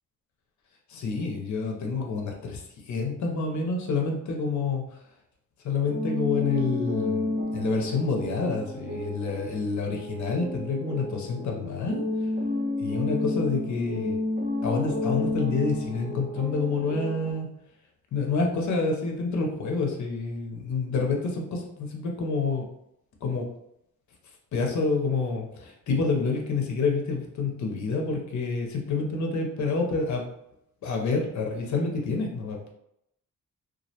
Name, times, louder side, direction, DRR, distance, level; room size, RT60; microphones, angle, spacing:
voice 1, 0.9-4.8 5.6-12.0 12.8-14.2 14.6-17.5 18.1-22.6 23.2-23.4 24.5-30.2 30.8-32.6, left 4 dB, 60° left, 1 dB, 0.5 m, -28 dB
sound 1, 5.8-17.3, left 2 dB, 30° right, 0.5 m, -31 dB
2.3 x 2.0 x 2.7 m, 0.77 s
wide cardioid pair, 175°, 33 cm